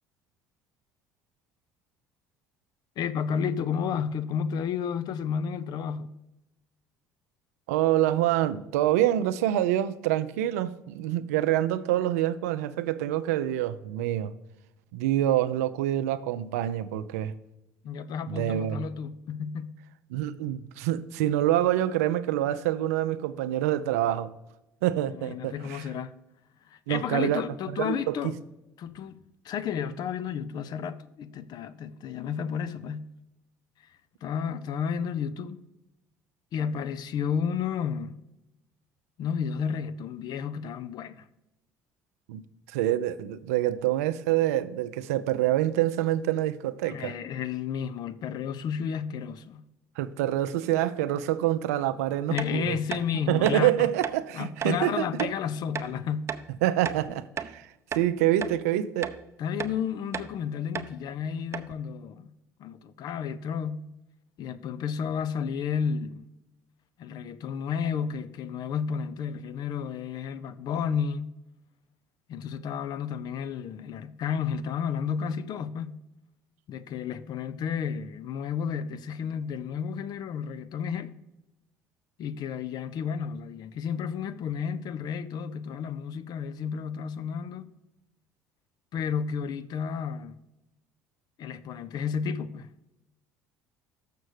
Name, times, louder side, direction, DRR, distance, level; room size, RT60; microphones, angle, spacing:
voice 1, 3.0-6.1 17.8-19.8 25.1-26.1 26.7-28.3 28.8-29.2 29.4-33.1 34.2-35.6 36.5-38.2 39.2-41.3 46.9-49.6 52.3-53.9 54.3-56.2 59.4-62.3 62.6-63.8 64.4-66.3 67.0-71.3 72.3-75.9 76.7-81.2 82.2-87.7 88.9-90.4 91.4-92.7, left 7 dB, 55° left, 0.6 m, -32 dB
voice 2, 7.7-14.3 14.9-17.3 18.3-18.8 20.1-24.3 24.8-25.8 26.9-28.1 42.3-47.1 50.0-52.8 53.3-55.3 56.6-59.1, right 13 dB, 85° right, 0.4 m, -26 dB
sound 1, 52.4-52.5 52.9-53.0 53.4-53.6 54.0-54.2 54.6-54.8 55.2-55.3 55.8-55.9 56.3-56.5 56.9-57.6 57.9-58.1 58.4-58.6 59.0-59.2 59.6-59.8 60.1-60.3 60.8-60.9 61.2-61.3 61.5-61.7, right 7 dB, 35° right, 0.6 m, -34 dB
6.6 x 6.3 x 4.9 m
hypercardioid pair, 70°, 8 cm